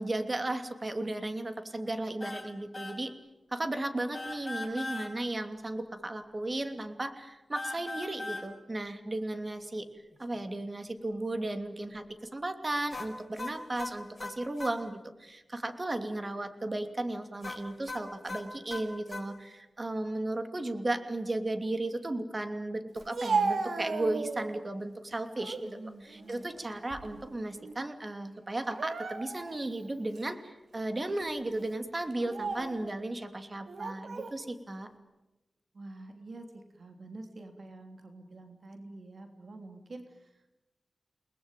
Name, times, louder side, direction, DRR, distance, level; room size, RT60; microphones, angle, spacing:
voice 1, 0.0-3.1 3.5-9.9 10.2-25.7 26.0-34.9, right 2 dB, 35° right, 8 dB, 2.9 m, -35 dB
sound 1, 2.2-2.5 2.7-3.0 4.1-5.1 7.5-8.5 12.9-14.8 17.4-19.3, left 2 dB, 30° left, 7.0 m, -39 dB
Speech, 23.0-24.6 25.1-25.7 26.1-27.3 27.6-27.8 28.6-29.6 30.2-30.3 31.1-31.3 32.1-32.8 33.7-34.4, right 4 dB, 90° right, 3.2 m, -35 dB
voice 2, 25.6-26.4 35.7-40.6, right 2 dB, 65° right, 5 dB, 3.2 m, -47 dB
30.0 x 20.0 x 9.1 m, 1.0 s
wide cardioid pair, 75°, 0 cm